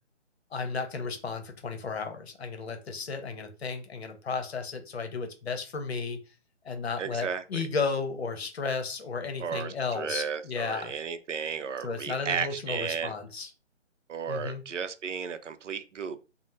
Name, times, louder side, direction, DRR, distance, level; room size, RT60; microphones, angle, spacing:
voice 1, 0.5-6.2 6.6-10.9 11.8-13.5 14.3-14.6, left 4 dB, 60° left, 0.8 m, -33 dB
voice 2, 7.0-7.6 9.4-13.1 14.1-16.2, right 6 dB, 75° right, 0.6 m, -34 dB
2.7 x 2.0 x 3.3 m
figure-of-eight pair, 160°, 37 cm